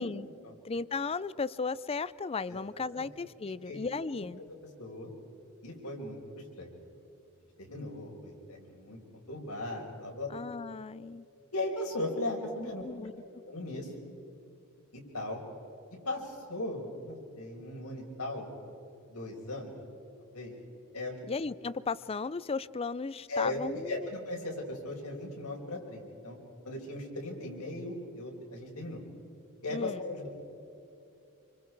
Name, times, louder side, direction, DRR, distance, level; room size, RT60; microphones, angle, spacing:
voice 1, 0.6-4.4 10.3-11.3 12.8-13.1 21.3-24.1 29.7-30.0, left 4 dB, 25° left, 18 dB, 0.4 m, -35 dB
voice 2, 4.8-5.1 5.6-6.7 7.6-9.0 9.3-10.3 11.5-12.8 13.4-13.9 14.9-15.4 16.0-18.5 19.1-19.7 20.3-20.5 20.9-21.1 23.3-23.6 23.9-26.4 26.6-29.0 29.6-30.4, left 2 dB, 90° left, 0 dB, 5.2 m, -37 dB
27.5 x 25.0 x 4.7 m, 2.8 s
head